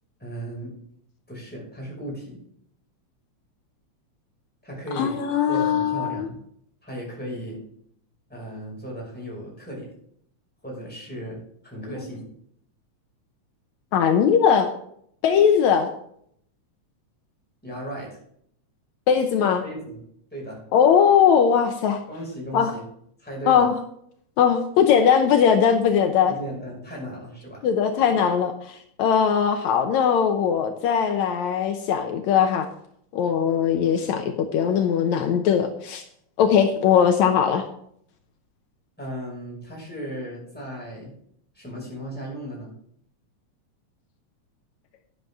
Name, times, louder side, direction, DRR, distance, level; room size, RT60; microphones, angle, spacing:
voice 1, 0.2-0.7 1.3-2.4 4.6-6.4 6.8-7.6 8.3-9.9 10.6-11.4 11.6-12.3 17.6-18.2 19.6-20.0 20.3-20.6 22.1-22.8 23.2-23.7 26.3-27.6 39.0-41.1 41.5-42.7, right 1 dB, 5° left, -4 dB, 5.5 m, -35 dB
voice 2, 5.0-6.3 11.9-12.0 13.9-14.7 15.2-15.9 19.1-19.6 20.7-22.0 22.5-22.7 23.5-23.7 24.4-26.3 27.6-32.7 33.1-36.0 36.4-37.7, left 7 dB, 75° left, 5 dB, 2.1 m, -20 dB
11.5 x 10.5 x 3.6 m, 0.68 s
omnidirectional pair, 3.3 m